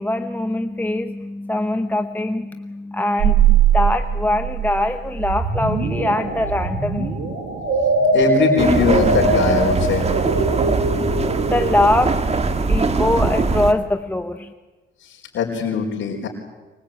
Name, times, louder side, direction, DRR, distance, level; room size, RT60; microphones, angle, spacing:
voice 1, 0.0-7.3 11.5-12.2 12.7-14.5, left 1 dB, 10° left, 7 dB, 1.1 m, -22 dB
sound 1, 3.2-11.9, right 5 dB, 70° right, 5.1 m, -21 dB
voice 2, 8.1-10.0 15.3-16.3, left 5 dB, 65° left, -3 dB, 4.7 m, -21 dB
sound 2, 8.6-13.7, right 3 dB, 30° right, 2.0 m, -21 dB
24.5 x 21.5 x 9.0 m, 1.2 s
cardioid pair, 90°, 20 cm